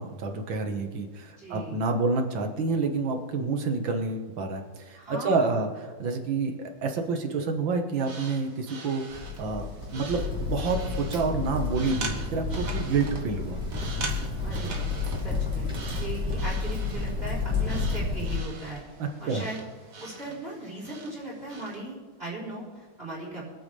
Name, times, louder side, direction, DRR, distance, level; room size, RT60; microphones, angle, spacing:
voice 1, 0.0-6.5 6.8-9.7 9.9-13.6 19.0-19.5, right 4 dB, 65° right, 4 dB, 2.1 m, -28 dB
voice 2, 1.4-1.8 4.9-5.6 14.4-14.9 15.2-19.6 20.0-23.4, right 2 dB, 25° right, -6 dB, 4.3 m, -38 dB
sound 1, 7.9-21.8, right 3 dB, 45° right, 1.7 m, -42 dB
Crackle, 9.1-18.4, left 4 dB, ahead, 3.8 m, -31 dB
25.5 x 9.0 x 3.4 m, 1.5 s
omnidirectional pair, 2.4 m